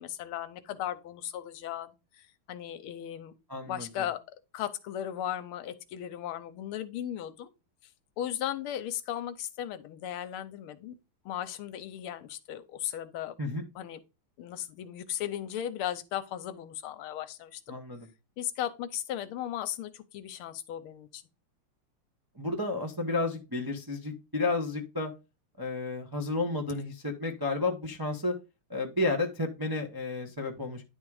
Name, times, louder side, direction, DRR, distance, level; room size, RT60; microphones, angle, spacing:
voice 1, 0.0-3.3 3.6-4.2 4.5-7.5 8.2-10.9 11.2-13.3 13.7-14.0 14.4-17.8 18.4-21.2, left 11 dB, 80° left, 1.6 m, -36 dB
voice 2, 3.5-3.9 13.4-13.6 17.7-18.1 22.4-25.1 25.6-28.4 28.7-30.8, left 2 dB, 30° right, 0.4 m, -31 dB
10.0 x 3.6 x 4.8 m
omnidirectional pair, 2.4 m